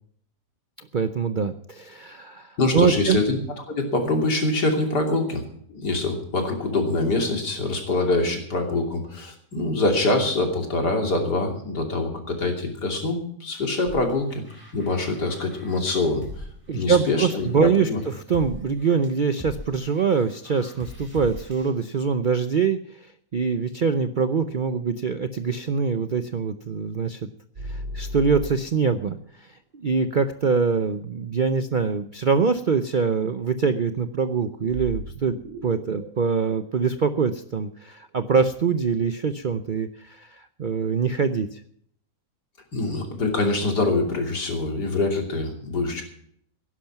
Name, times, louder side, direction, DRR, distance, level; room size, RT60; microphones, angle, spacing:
voice 1, 0.8-3.2 16.7-27.2 27.6-35.4 35.6-41.6, right 5 dB, 85° right, 10 dB, 0.4 m, -24 dB
voice 2, 2.6-3.4 3.7-5.4 5.7-14.4 14.7-16.4 16.7-18.0 42.7-46.0, left 2 dB, 70° left, 3 dB, 3.5 m, -24 dB
sound 1, 13.9-21.7, left 1 dB, 10° right, 4.0 m, -42 dB
sound 2, 27.6-29.1 34.7-37.8, equal, 55° right, 2.7 m, -36 dB
16.0 x 11.0 x 5.8 m, 0.66 s
omnidirectional pair, 1.8 m